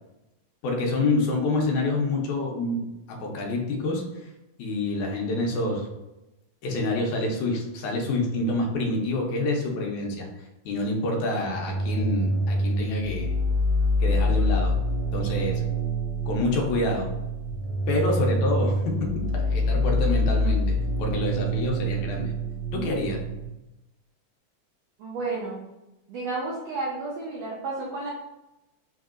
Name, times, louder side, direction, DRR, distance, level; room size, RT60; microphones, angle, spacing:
voice 1, 0.6-4.0 4.6-5.9 6.6-10.3 10.7-13.3 14.0-14.8 15.1-15.6 16.3-17.1 17.9-18.8 19.2-22.3 22.7-23.2, left 2 dB, 75° left, 0 dB, 2.0 m, -27 dB
sound 1, 11.5-23.4, equal, 60° right, 1.5 m, -26 dB
voice 2, 25.0-25.7 26.1-28.1, right 3 dB, 90° right, -4 dB, 1.4 m, -32 dB
5.5 x 2.7 x 2.4 m, 0.97 s
omnidirectional pair, 3.5 m